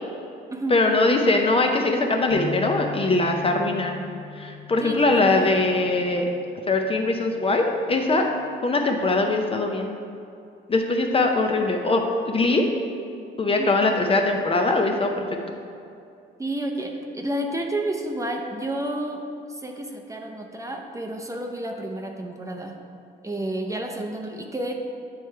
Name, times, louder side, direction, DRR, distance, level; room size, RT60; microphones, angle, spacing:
voice 1, 0.7-4.0 4.4-6.3 6.7-8.3 8.6-9.9 10.7-12.7 13.4-15.2, left 2 dB, 30° left, 3 dB, 0.5 m, -21 dB
sound 1, 2.3-6.6 7.0-7.3 8.1-8.5, left 3 dB, 55° right, 0.9 m, -39 dB
voice 2, 4.8-5.5 13.6-13.7 16.4-22.8 23.2-24.7, right 1 dB, 15° right, 2 dB, 0.6 m, -30 dB
8.3 x 3.2 x 4.5 m, 2.5 s
cardioid pair, 90°, 20 cm